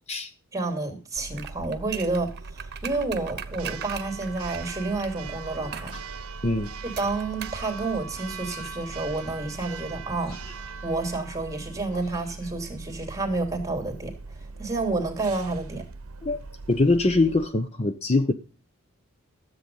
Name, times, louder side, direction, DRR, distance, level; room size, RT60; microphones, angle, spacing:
voice 1, 0.5-5.9 7.0-14.1 14.6-15.8, right 3 dB, 15° right, 6 dB, 2.9 m, -30 dB
Church bell, 1.2-17.5, right 4 dB, 75° right, 0.8 m, -40 dB
sound 1, 1.3-5.1 5.7-6.0 7.0-7.6 7.9-8.0, right 9 dB, 50° right, 1.1 m, -38 dB
sound 2, 5.5-6.1 6.8-7.3 8.4-8.9 10.1-10.7 11.9-12.7, left 3 dB, 50° left, 4.7 m, -51 dB
voice 2, 16.7-18.3, left 2 dB, 30° left, 9 dB, 0.8 m, -22 dB
13.5 x 7.9 x 5.4 m, 0.35 s
head